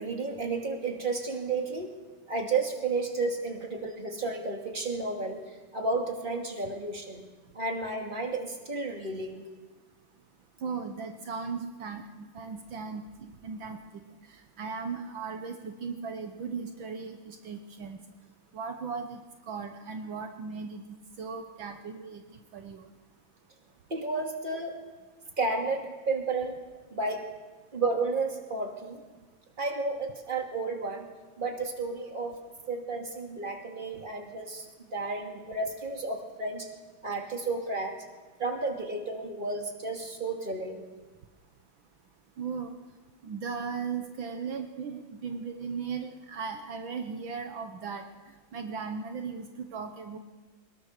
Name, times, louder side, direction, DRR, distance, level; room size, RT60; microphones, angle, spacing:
voice 1, 0.0-2.0 2.3-7.2 7.5-9.4 23.9-24.8 25.4-26.5 26.9-27.2 27.7-29.0 29.6-31.1 31.4-32.4 32.7-34.6 34.9-36.7 37.0-38.0 38.4-40.8, right 3 dB, 25° right, 2 dB, 2.7 m, -32 dB
voice 2, 10.6-13.1 13.4-14.0 14.6-18.0 18.5-22.2 22.5-22.8 42.4-42.8 43.2-48.0 48.5-50.2, right 5 dB, 70° right, 5 dB, 1.9 m, -37 dB
22.5 x 21.0 x 6.7 m, 1.3 s
omnidirectional pair, 2.3 m